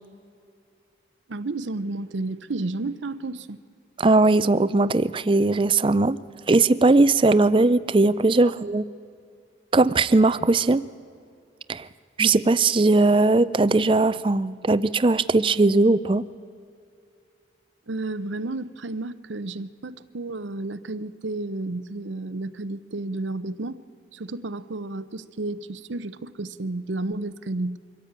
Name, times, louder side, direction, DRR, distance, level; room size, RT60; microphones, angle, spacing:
voice 1, 1.3-3.6 17.9-23.8 24.1-27.8, right 2 dB, 85° right, 0.8 m, -32 dB
voice 2, 4.0-6.2 6.5-8.8 9.7-10.8 11.7-11.9 12.2-16.2, right 3 dB, 30° right, 0.5 m, -19 dB
24.5 x 15.0 x 8.8 m
head